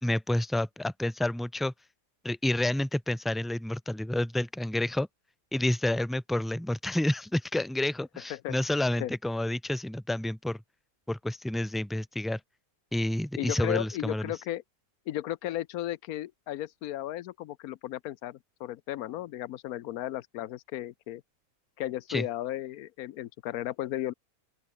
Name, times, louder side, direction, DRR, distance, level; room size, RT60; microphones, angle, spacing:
voice 1, 0.0-1.7 2.2-5.1 5.5-10.6 11.1-12.4 12.9-14.3 22.1-22.3, left 1 dB, ahead, 0.4 m, -29 dB
voice 2, 13.4-14.6 15.1-21.2 21.8-24.1, left 13 dB, 80° left, 1.1 m, -35 dB
open air
omnidirectional pair, 1.5 m